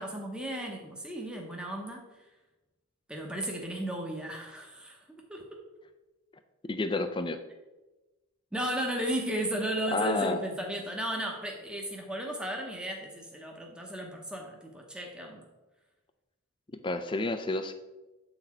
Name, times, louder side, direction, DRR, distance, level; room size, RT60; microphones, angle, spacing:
voice 1, 0.0-2.0 3.1-5.0 5.3-5.6 8.5-15.4, right 1 dB, 5° right, 1 dB, 0.8 m, -34 dB
voice 2, 6.7-7.4 9.9-10.4 16.8-17.7, left 2 dB, 20° left, 8 dB, 0.4 m, -30 dB
8.1 x 4.1 x 4.2 m, 1.1 s
head